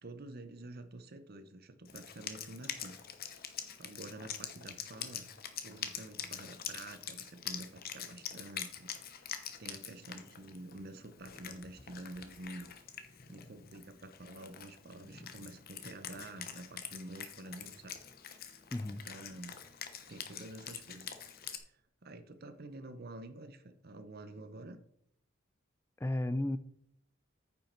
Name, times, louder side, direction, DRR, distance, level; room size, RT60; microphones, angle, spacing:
voice 1, 0.0-3.0 3.8-5.3 5.6-12.7 13.0-18.0 18.4-18.6 19.1-21.2 21.7-24.8, right 2 dB, 45° right, 0.8 m, -49 dB
Wind instrument woodwind instrument, 1.9-21.6, left 9 dB, 45° left, 0.9 m, -45 dB
voice 2, 18.7-19.1 26.0-26.6, left 1 dB, 10° left, 0.3 m, -33 dB
9.2 x 5.6 x 4.4 m
head